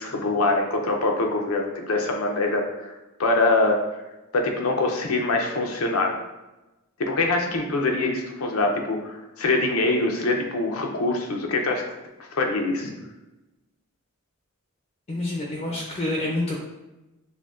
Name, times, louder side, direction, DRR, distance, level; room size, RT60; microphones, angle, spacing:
voice 1, 0.0-2.9 3.2-3.8 4.3-6.2 7.0-11.8 12.2-12.9, left 2 dB, 85° left, 2 dB, 0.6 m, -24 dB
voice 2, 15.1-16.6, left 1 dB, 30° left, -1 dB, 0.5 m, -27 dB
6.0 x 2.2 x 2.4 m, 1.0 s
head